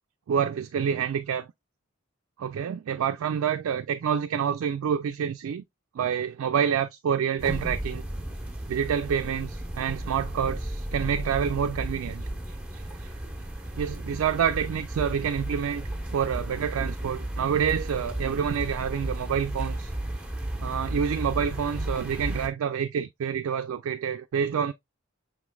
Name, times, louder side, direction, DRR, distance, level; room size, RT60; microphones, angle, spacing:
voice 1, 0.3-1.5 2.4-5.6 5.9-8.0 8.7-13.1 13.7-19.9 20.6-24.7, right 7 dB, 85° right, 0.3 m, -28 dB
sound 1, 7.4-22.5, right 1 dB, 5° right, 0.8 m, -34 dB
5.7 x 3.1 x 2.3 m
head